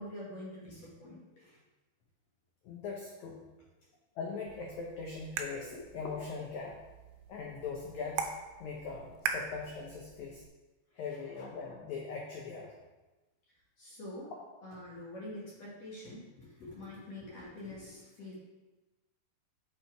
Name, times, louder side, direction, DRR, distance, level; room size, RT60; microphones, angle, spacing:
voice 1, 0.0-1.6 5.7-5.8 13.8-14.3 14.6-18.3, left 1 dB, 55° left, -6 dB, 2.3 m, -46 dB
voice 2, 2.6-3.4 4.2-6.8 7.3-8.3 8.6-10.4 10.9-12.7, left 5 dB, 85° left, -1 dB, 1.6 m, -40 dB
sound 1, 4.5-10.5, right 6 dB, 85° right, 2.5 m, -42 dB
7.2 x 4.3 x 4.6 m, 1.1 s
omnidirectional pair, 4.4 m